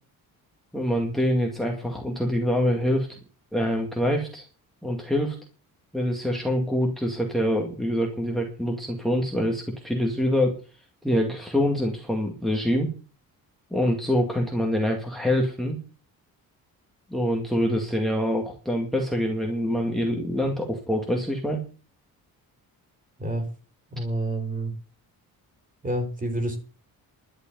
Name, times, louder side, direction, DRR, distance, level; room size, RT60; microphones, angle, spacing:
voice 1, 0.7-3.1 3.5-4.5 4.8-5.4 5.9-10.6 11.0-12.9 13.7-15.8 17.1-21.6, equal, ahead, 1 dB, 2.3 m, -25 dB
voice 2, 23.9-24.7 25.8-26.6, right 1 dB, 20° right, 6 dB, 4.0 m, -28 dB
12.0 x 6.7 x 9.2 m, 0.36 s
cardioid pair, 150°, 36 cm